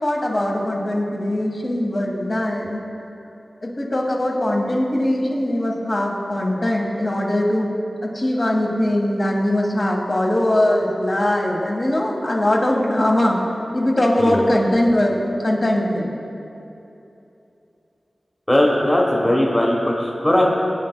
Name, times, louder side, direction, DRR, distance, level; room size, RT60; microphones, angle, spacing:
voice 1, 0.0-2.8 3.6-7.7 8.0-13.4 13.7-16.1, left 1 dB, 50° left, -2 dB, 1.5 m, -21 dB
voice 2, 18.5-20.4, left 1 dB, 15° left, -2 dB, 1.1 m, -18 dB
18.5 x 9.0 x 2.2 m, 2.9 s
wide cardioid pair, 90°, 0 cm